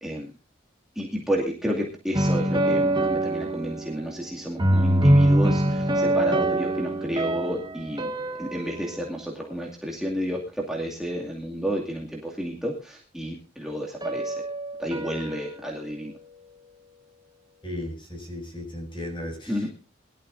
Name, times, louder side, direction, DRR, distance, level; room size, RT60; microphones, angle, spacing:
voice 1, 1.0-8.1 8.4-14.3 14.8-16.1 19.5-19.7, equal, 5° right, 2.4 m, -31 dB
sound 1, 2.1-4.3 4.6-9.0 14.0-16.0, right 1 dB, 25° right, 1.4 m, -24 dB
voice 2, 17.6-19.7, left 1 dB, 25° left, 6.6 m, -35 dB
22.0 x 13.0 x 2.7 m
head